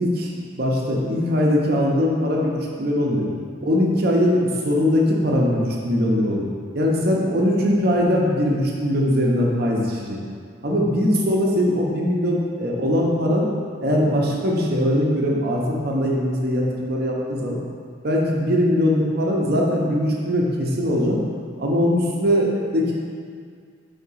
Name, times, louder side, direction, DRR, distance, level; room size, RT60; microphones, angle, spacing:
voice 1, 0.0-3.3 3.6-6.4 6.7-10.2 10.6-13.5 13.8-17.6 18.0-21.2 21.6-22.9, equal, 55° right, -2 dB, 0.8 m, -21 dB
4.8 x 3.6 x 5.5 m, 2.1 s
head